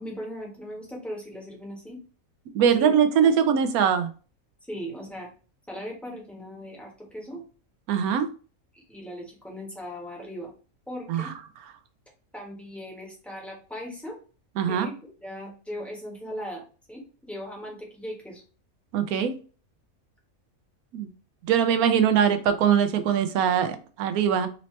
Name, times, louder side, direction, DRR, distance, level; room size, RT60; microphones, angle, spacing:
voice 1, 0.0-2.0 2.6-3.0 4.7-5.3 5.7-7.4 8.7-10.5 10.9-11.3 12.3-14.2 14.7-17.0 17.3-18.4, equal, ahead, -2 dB, 1.1 m, -38 dB
voice 2, 2.5-4.1 7.9-8.3 11.1-11.3 14.6-14.9 18.9-19.3 20.9-21.1 21.5-24.5, right 8 dB, 90° right, 9 dB, 1.1 m, -22 dB
4.1 x 2.8 x 3.1 m, 0.37 s
omnidirectional pair, 1.5 m